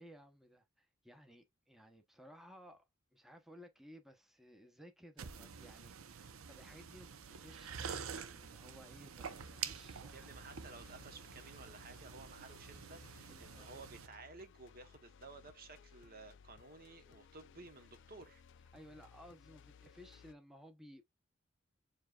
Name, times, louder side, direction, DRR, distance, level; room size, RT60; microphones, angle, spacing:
voice 1, 0.0-10.6 13.3-13.7 18.7-21.0, equal, ahead, 0.8 m, -58 dB
sound 1, 5.2-14.1, right 6 dB, 85° right, 0.7 m, -48 dB
sound 2, 9.2-20.3, left 6 dB, 60° left, 0.4 m, -61 dB
voice 2, 10.1-18.4, right 3 dB, 45° right, 1.0 m, -55 dB
7.2 x 3.1 x 2.3 m
head